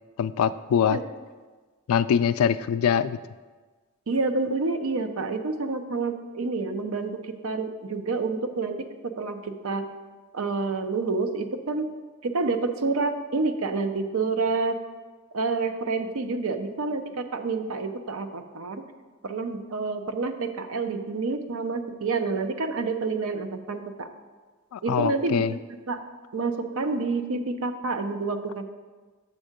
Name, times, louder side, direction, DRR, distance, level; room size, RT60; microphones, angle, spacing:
voice 1, 0.2-1.0 1.9-3.2 24.7-25.5, left 8 dB, 85° left, 15 dB, 0.3 m, -23 dB
voice 2, 4.1-8.9 9.2-9.9 10.3-11.9 12.2-14.7 15.3-18.9 19.2-24.1 24.8-25.6 25.9-26.0 26.3-28.6, right 3 dB, 75° right, 8 dB, 0.6 m, -28 dB
7.6 x 3.6 x 6.4 m, 1.4 s
head